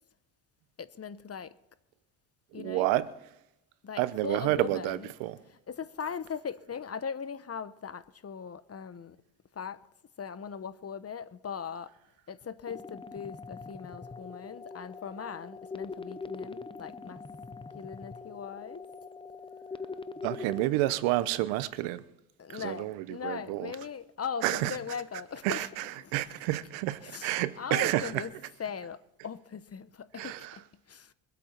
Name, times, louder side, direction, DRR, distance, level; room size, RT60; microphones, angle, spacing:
voice 1, 0.8-1.5 2.5-2.9 3.8-5.1 5.5-9.2 9.5-9.8 10.2-11.9 12.3-17.2 17.7-18.8 22.4-26.2 27.0-28.3 28.6-31.1, left 7 dB, 30° left, 1.0 m, -40 dB
voice 2, 2.6-3.1 4.0-5.4 20.2-22.0 22.5-23.7 24.4-24.8 25.4-25.8 26.1-28.2 30.2-30.6, right 16 dB, 85° right, 1.0 m, -29 dB
sound 1, 12.7-20.7, left 4 dB, 10° left, 0.8 m, -42 dB
24.0 x 8.4 x 4.5 m
supercardioid pair, 70°, 45 cm